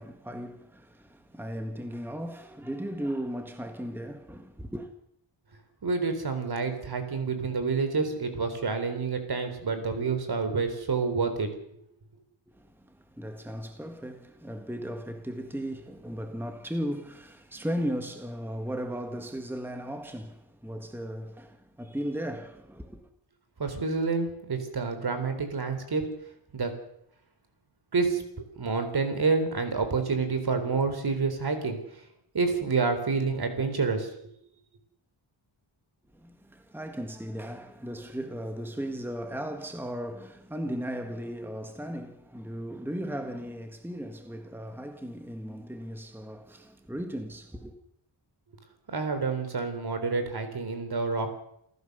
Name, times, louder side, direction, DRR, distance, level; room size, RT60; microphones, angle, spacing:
voice 1, 0.0-4.9 12.5-23.1 36.1-47.8, equal, 5° right, 1.7 m, -36 dB
voice 2, 5.8-11.5 23.6-26.1 26.5-26.7 27.9-28.2 28.6-32.0 32.3-34.1 48.9-51.3, right 4 dB, 55° right, 4.0 m, -28 dB
28.5 x 15.0 x 6.8 m
wide cardioid pair, 145°, 46 cm